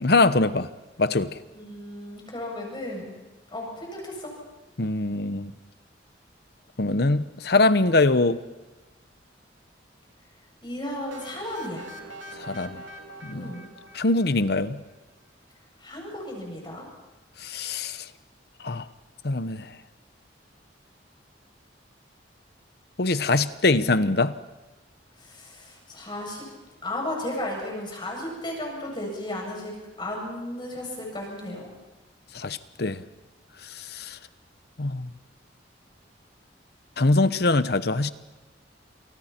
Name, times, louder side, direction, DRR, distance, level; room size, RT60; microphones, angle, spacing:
voice 1, 0.0-0.7 1.0-1.3 4.8-5.5 6.8-8.4 12.4-12.8 13.2-13.5 13.9-14.8 17.4-18.0 18.6-18.8 19.2-19.7 23.0-24.3 32.3-33.0 33.7-34.2 34.8-35.1 37.0-38.1, left 2 dB, 55° left, 13 dB, 0.9 m, -23 dB
voice 2, 1.5-3.1 3.5-4.3 10.6-11.9 13.3-13.7 15.8-16.9 25.2-26.4 26.8-31.7, left 1 dB, 25° left, -1 dB, 7.9 m, -34 dB
sound 1, 11.1-14.9, right 1 dB, 80° right, 3.1 m, -44 dB
29.0 x 28.0 x 4.5 m, 1.2 s
head